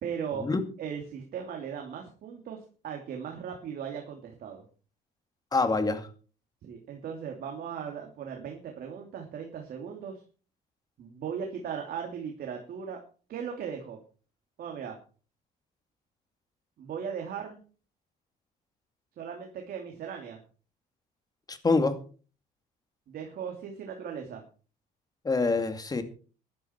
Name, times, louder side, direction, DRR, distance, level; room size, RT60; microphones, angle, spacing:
voice 1, 0.0-0.5 0.8-4.6 6.6-10.2 11.0-13.0 13.3-14.0 14.6-15.0 16.8-17.6 19.2-20.4 23.1-24.4, right 7 dB, 60° right, 2 dB, 2.9 m, -38 dB
voice 2, 5.5-6.1 21.5-22.0 25.2-26.0, left 3 dB, 20° left, 8 dB, 2.4 m, -25 dB
14.5 x 11.5 x 4.5 m, 0.39 s
cardioid pair, 110°, 17 cm